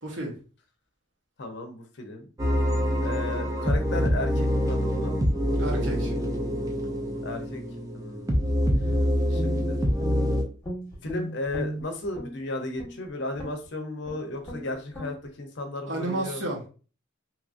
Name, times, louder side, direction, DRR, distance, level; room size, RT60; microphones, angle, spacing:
voice 1, 0.0-0.4 5.6-6.1 15.9-16.7, right 2 dB, 65° right, 0.9 m, -31 dB
voice 2, 1.4-2.3 3.0-5.2 7.2-7.6 7.9-8.5 9.3-9.8 11.0-16.4, left 2 dB, 60° left, 0.6 m, -34 dB
sound 1, 2.4-10.4, equal, 15° right, 0.4 m, -25 dB
Guitar, 8.6-10.3 10.6-12.4 12.8-13.0 13.4-13.7 14.0-14.2 14.4-14.6 14.9-15.1, equal, 15° left, 1.0 m, -35 dB
2.9 x 2.4 x 2.4 m
head